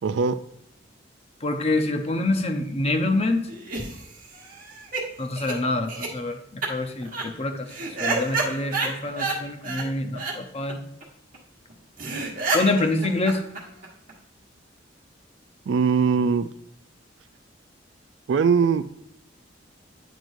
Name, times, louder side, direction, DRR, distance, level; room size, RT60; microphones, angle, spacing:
voice 1, 0.0-0.4 15.7-16.5 18.3-19.0, right 5 dB, 70° right, 12 dB, 0.3 m, -21 dB
voice 2, 1.4-3.5 5.2-7.7 8.0-10.8 12.5-13.4, left 2 dB, 35° left, 6 dB, 0.7 m, -26 dB
sound 1, 3.5-5.0 5.4-5.5 5.9-6.1 6.6-6.7 7.0-7.2 7.7-9.4 9.6-9.9 10.1-10.3 10.7-10.8 11.0-11.1 11.3-11.4 11.7-11.8 12.0-14.1, right 3 dB, 50° right, 1.4 m, -29 dB
9.0 x 4.5 x 2.6 m, 0.79 s
head